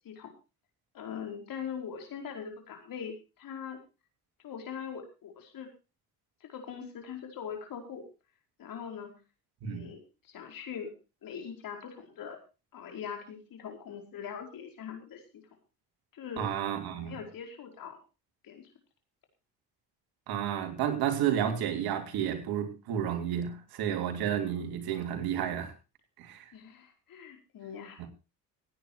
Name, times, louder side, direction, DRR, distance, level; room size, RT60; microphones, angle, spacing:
voice 1, 0.9-3.8 4.4-5.7 6.4-8.0 8.6-9.1 9.7-10.9 11.2-12.4 12.7-15.4 16.1-16.5 16.8-18.0 18.4-18.7 26.5-28.1, left 7 dB, 65° left, 4 dB, 4.8 m, -42 dB
voice 2, 16.4-17.2 20.3-25.7 26.2-26.4 28.0-28.1, right 9 dB, 80° right, 6 dB, 3.1 m, -31 dB
16.0 x 9.7 x 4.7 m, 0.32 s
supercardioid pair, 80°, 37 cm